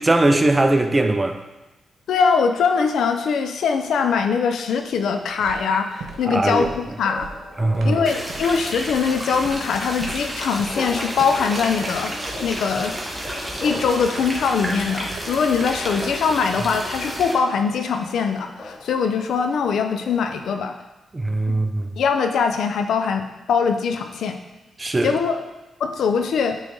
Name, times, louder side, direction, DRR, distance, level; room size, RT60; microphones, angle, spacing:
voice 1, 0.0-1.4 6.2-6.7 7.6-8.0 21.1-21.9 24.8-25.2, right 2 dB, 25° right, 6 dB, 0.6 m, -20 dB
voice 2, 2.1-6.7 7.0-7.3 7.8-12.1 12.4-12.9 13.6-20.7 22.0-24.4 25.0-25.5 25.8-26.6, left 5 dB, 80° left, 6 dB, 0.5 m, -22 dB
sound 1, 4.8-5.0 5.3-16.7, right 4 dB, 75° right, 1.0 m, -41 dB
sound 2, 5.5-20.5, left 2 dB, 35° left, 0.8 m, -40 dB
sound 3, 8.1-17.3, equal, 5° right, 1.3 m, -31 dB
8.6 x 3.3 x 3.8 m, 1.1 s
cardioid pair, 65°, 0 cm